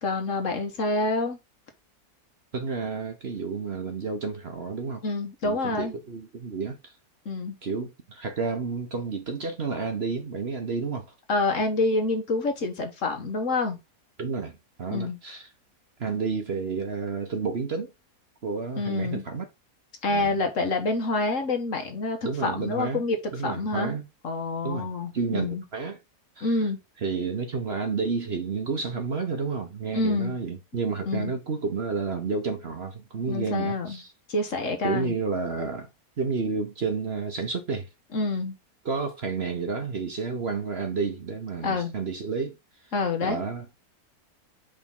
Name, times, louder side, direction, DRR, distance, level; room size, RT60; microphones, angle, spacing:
voice 1, 0.0-1.4 5.0-5.9 7.2-7.6 11.3-13.8 14.9-15.2 18.8-19.2 20.0-24.0 24.2-25.6 26.4-26.8 29.9-30.3 31.1-31.3 33.3-34.0 34.3-35.1 38.1-38.6 41.6-41.9 42.9-43.4, left 3 dB, 55° left, 1.5 m, -27 dB
voice 2, 2.5-5.0 5.4-6.9 7.6-11.1 14.2-15.5 16.0-17.9 18.4-19.4 20.1-20.4 22.2-23.0 23.3-24.0 24.6-24.9 25.1-26.0 26.4-26.7 27.0-34.1 34.8-35.9 36.2-37.9 38.8-42.6 43.2-43.6, right 4 dB, 45° right, 1.2 m, -30 dB
5.2 x 3.8 x 5.4 m
omnidirectional pair, 1.7 m